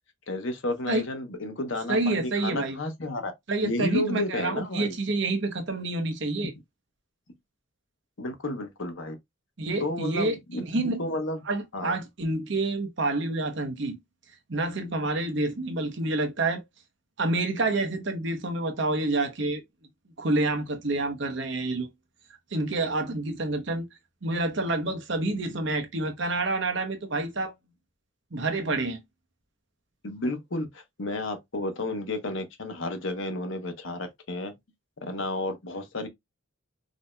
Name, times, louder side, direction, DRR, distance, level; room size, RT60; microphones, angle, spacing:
voice 1, 0.3-3.3 3.6-5.0 8.2-9.2 9.8-10.6 11.0-11.4 11.7-12.0 30.0-34.5 35.0-36.1, left 2 dB, 65° left, 0.9 m, -32 dB
voice 2, 1.9-2.8 3.5-6.5 9.6-11.0 11.5-14.0 14.5-16.6 17.2-19.6 20.2-21.9 22.5-23.9 24.2-27.5 28.3-29.0, right 2 dB, 60° right, 0.8 m, -28 dB
5.0 x 2.7 x 2.2 m
head